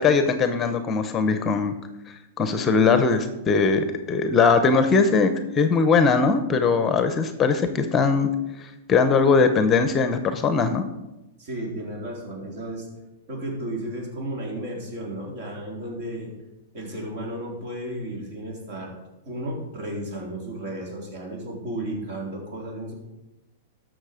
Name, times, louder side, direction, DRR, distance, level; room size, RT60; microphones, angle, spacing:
voice 1, 0.0-1.7 2.4-8.3 8.6-10.8, left 4 dB, 20° left, 9 dB, 0.8 m, -20 dB
voice 2, 11.4-12.9 13.3-16.3 16.7-19.0 19.3-22.9, right 1 dB, 50° right, -1 dB, 3.9 m, -33 dB
13.0 x 6.4 x 5.0 m, 0.99 s
hypercardioid pair, 140°, 0 cm